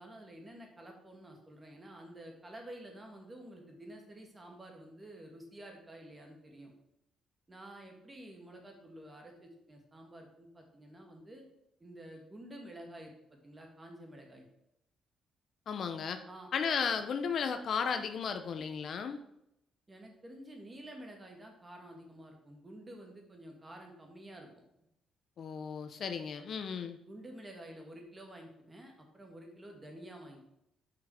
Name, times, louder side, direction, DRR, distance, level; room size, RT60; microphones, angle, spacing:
voice 1, 0.0-6.7 7.5-11.4 11.8-14.5 16.3-16.5 19.9-24.6 27.1-30.4, right 1 dB, 20° right, 2 dB, 2.1 m, -50 dB
voice 2, 15.7-16.2 16.5-19.2 25.4-27.0, left 6 dB, 60° left, 8 dB, 0.7 m, -34 dB
6.1 x 6.1 x 4.9 m, 0.81 s
cardioid pair, 90°, 0 cm